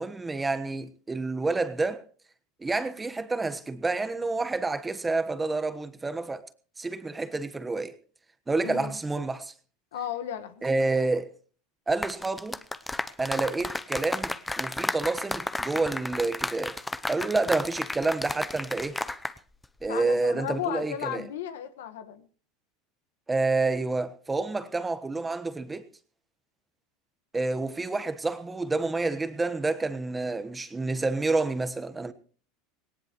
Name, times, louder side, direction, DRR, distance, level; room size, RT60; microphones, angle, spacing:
voice 1, 0.0-2.0 2.6-6.5 6.8-7.9 8.5-9.5 10.6-11.3 11.9-12.6 13.2-16.8 17.1-19.0 19.8-21.3 23.3-25.9 27.3-32.1, right 3 dB, 15° right, 1.2 m, -29 dB
voice 2, 8.6-9.0 9.9-10.6 19.9-22.3, left 10 dB, 85° left, 1.5 m, -35 dB
sound 1, 11.9-19.4 19.6-19.9, left 2 dB, 10° left, 0.7 m, -33 dB
18.5 x 18.5 x 3.1 m
supercardioid pair, 115°, 0 cm